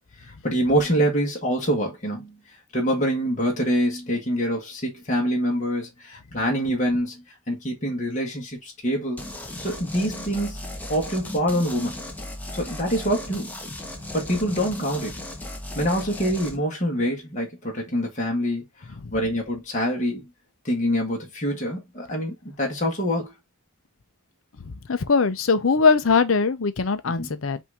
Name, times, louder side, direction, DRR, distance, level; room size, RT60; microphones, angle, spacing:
voice 1, 0.2-2.4 2.7-9.3 9.6-10.6 10.9-12.0 12.5-13.5 14.1-15.2 15.7-18.7 19.1-20.2 20.6-23.3 27.2-27.3, equal, 35° left, 1.5 m, -25 dB
sound 1, 9.2-16.6, left 1 dB, 10° left, 0.9 m, -36 dB
voice 2, 24.7-27.6, left 4 dB, 75° left, 0.7 m, -21 dB
5.6 x 2.7 x 3.4 m
head